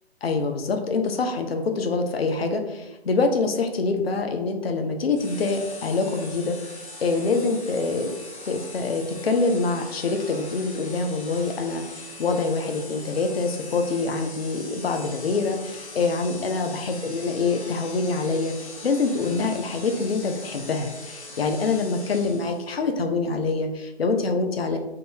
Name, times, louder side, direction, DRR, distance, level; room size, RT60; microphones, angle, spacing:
voice 1, 0.2-8.1 8.5-24.8, left 3 dB, 65° left, 5 dB, 0.6 m, -25 dB
sound 1, 5.1-22.7, left 2 dB, 80° left, 1.3 m, -41 dB
3.7 x 2.5 x 4.4 m, 0.97 s
figure-of-eight pair, 135°, 33 cm